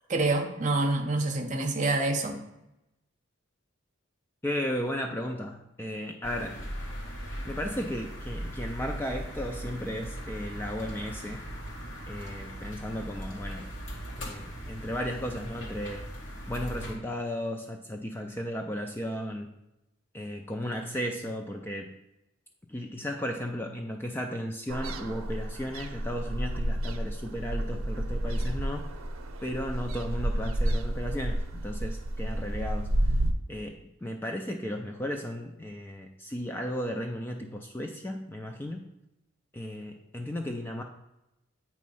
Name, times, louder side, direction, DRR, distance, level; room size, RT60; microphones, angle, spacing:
voice 1, 0.1-2.4, right 2 dB, 35° right, 4 dB, 0.7 m, -27 dB
voice 2, 4.4-6.7 7.4-11.5 12.1-13.7 14.2-16.1 16.5-19.6 20.1-21.9 22.7-28.8 29.4-32.9 33.5-38.9 39.5-40.8, equal, 10° left, 3 dB, 0.3 m, -35 dB
sound 1, 6.2-16.9, equal, 60° left, 1.6 m, -39 dB
sound 2, 24.7-33.3, right 1 dB, 85° right, 0.6 m, -30 dB
8.6 x 3.1 x 5.3 m, 0.90 s
head